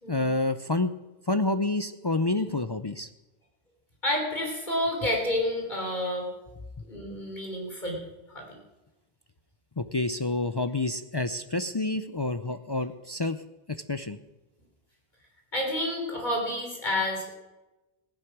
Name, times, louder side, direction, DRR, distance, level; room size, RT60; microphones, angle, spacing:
voice 1, 0.1-0.9 1.3-3.1 9.8-13.4 13.7-14.2, left 2 dB, 30° left, 9 dB, 0.5 m, -28 dB
voice 2, 4.0-6.3 6.9-8.0 8.3-8.5 15.5-17.3, left 1 dB, 50° left, 0 dB, 3.9 m, -29 dB
15.5 x 11.0 x 6.1 m, 1.0 s
omnidirectional pair, 1.0 m